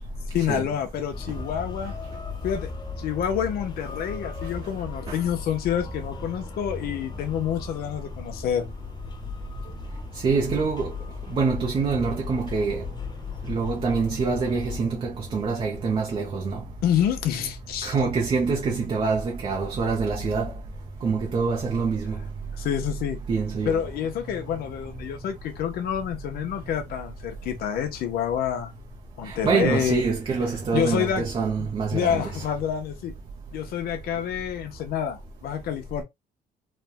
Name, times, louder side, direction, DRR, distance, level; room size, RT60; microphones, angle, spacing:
voice 1, 0.3-1.9 2.4-2.7 3.0-8.7 16.8-17.9 22.6-23.2 23.6-28.7 29.2-30.0 30.7-31.2 31.6-33.1 33.5-36.0, left 9 dB, 65° left, 0.7 m, -28 dB
sound 1, 1.1-14.8, left 5 dB, 25° left, 0.5 m, -37 dB
voice 2, 10.1-11.0 11.3-12.8 13.5-16.6 17.8-20.5 21.0-22.2 23.3-23.8 24.4-24.5 29.2-32.4, right 4 dB, 35° right, 0.6 m, -25 dB
3.2 x 2.1 x 2.2 m
cardioid pair, 110°, 17 cm